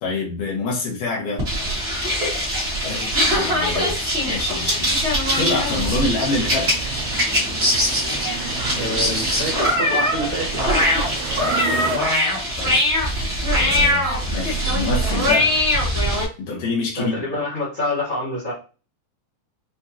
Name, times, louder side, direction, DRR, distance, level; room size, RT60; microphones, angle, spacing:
voice 1, 0.0-1.5 2.8-3.0 3.3-6.8 12.6-12.8 13.5-15.5 16.4-17.1, left 3 dB, 85° left, -3 dB, 3.0 m, -26 dB
sound 1, 1.4-16.2, equal, 55° right, 0.6 m, -21 dB
voice 2, 2.8-3.1 8.7-10.7 17.0-18.5, left 1 dB, 50° left, -6 dB, 0.9 m, -27 dB
sound 2, 5.2-12.0, right 9 dB, 85° right, 2.2 m, -33 dB
6.2 x 2.5 x 2.8 m, 0.34 s
omnidirectional pair, 3.7 m